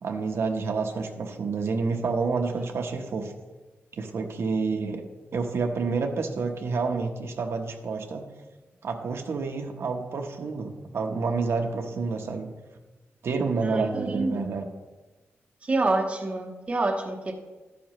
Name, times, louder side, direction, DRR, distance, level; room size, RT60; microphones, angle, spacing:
voice 1, 0.0-3.3 4.0-5.0 5.3-8.3 8.8-12.5 13.2-14.6, right 4 dB, 65° right, 3 dB, 1.1 m, -29 dB
voice 2, 13.6-14.5 15.6-17.3, right 2 dB, 25° right, 2 dB, 1.0 m, -27 dB
12.5 x 10.0 x 3.1 m, 1.2 s
wide cardioid pair, 165°, 5 cm